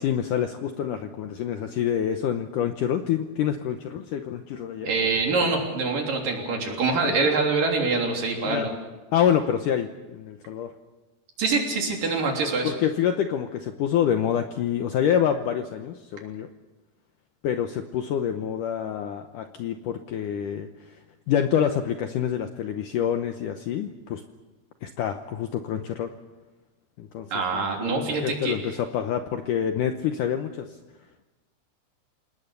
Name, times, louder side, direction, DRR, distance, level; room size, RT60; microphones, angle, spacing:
voice 1, 0.0-4.9 8.5-8.7 9.1-10.7 12.6-16.5 17.4-20.7 21.3-24.2 24.8-26.1 27.0-27.3 27.5-30.8, left 9 dB, 75° left, 7 dB, 2.0 m, -27 dB
voice 2, 4.8-8.7 11.4-12.7 27.3-28.5, right 3 dB, 55° right, 1 dB, 4.8 m, -25 dB
28.0 x 19.0 x 6.9 m, 1.2 s
omnidirectional pair, 4.7 m